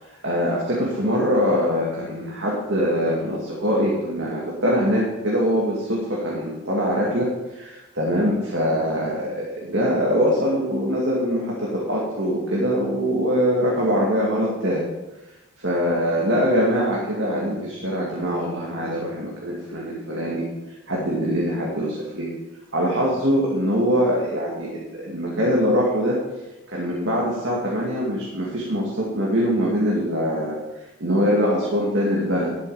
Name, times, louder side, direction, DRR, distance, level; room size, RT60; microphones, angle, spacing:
voice 1, 0.2-14.8 15.6-20.5 20.9-22.3 22.7-26.2 26.7-32.6, equal, 55° right, -4 dB, 2.3 m, -23 dB
12.5 x 8.0 x 5.0 m, 1.0 s
head